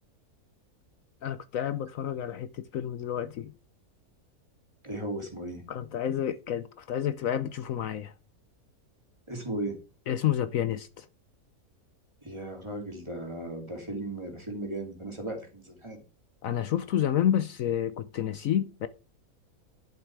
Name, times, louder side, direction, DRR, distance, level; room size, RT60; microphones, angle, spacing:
voice 1, 1.2-3.5 5.7-8.1 10.1-11.0 16.4-18.9, left 10 dB, 70° left, 1.1 m, -29 dB
voice 2, 4.8-5.6 9.3-9.7 12.2-16.0, right 1 dB, 20° right, 3.0 m, -36 dB
11.5 x 7.4 x 4.8 m
omnidirectional pair, 1.6 m